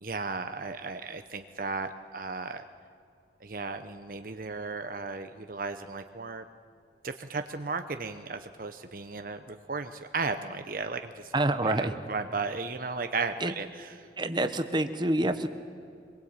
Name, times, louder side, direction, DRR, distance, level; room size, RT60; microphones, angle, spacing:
voice 1, 0.0-2.6 3.4-6.4 7.0-11.3 11.6-13.9, right 4 dB, 50° right, 8 dB, 0.8 m, -35 dB
voice 2, 11.3-11.9 13.4-13.5 14.2-15.5, right 1 dB, 25° right, 9 dB, 1.1 m, -27 dB
25.5 x 22.0 x 8.8 m, 2.4 s
head